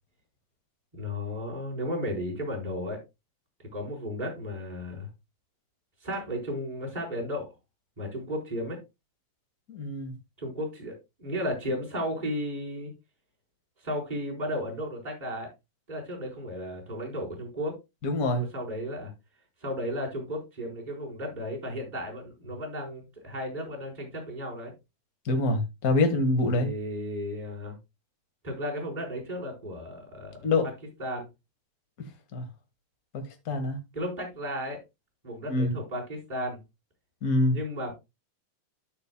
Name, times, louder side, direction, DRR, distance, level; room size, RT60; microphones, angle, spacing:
voice 1, 0.9-3.0 3.7-5.1 6.0-7.5 8.0-8.8 10.4-12.9 13.8-15.5 15.9-17.8 18.4-19.1 19.6-24.7 26.6-27.8 28.4-30.5 31.0-31.3 33.9-34.8 35.2-36.6 37.5-37.9, equal, 10° right, 4.1 m, -34 dB
voice 2, 9.7-10.1 18.0-18.4 25.2-26.7 30.4-30.7 32.3-32.5 33.1-33.8 35.5-35.8 37.2-37.6, left 2 dB, 45° left, 1.2 m, -25 dB
13.0 x 7.2 x 2.2 m
omnidirectional pair, 4.1 m